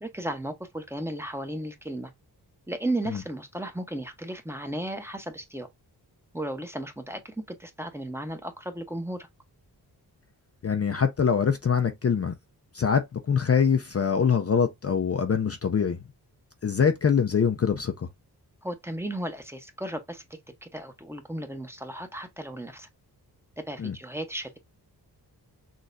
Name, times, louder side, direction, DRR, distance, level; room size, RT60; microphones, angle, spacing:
voice 1, 0.0-2.1 2.7-5.7 6.3-9.3 18.6-20.2 20.6-22.9 23.6-24.6, right 1 dB, 5° right, 0.9 m, -35 dB
voice 2, 10.6-12.3 12.7-16.0 16.6-18.1 23.8-24.0, left 6 dB, 40° left, 0.6 m, -24 dB
6.3 x 3.1 x 2.6 m
wide cardioid pair, 105°, 40 cm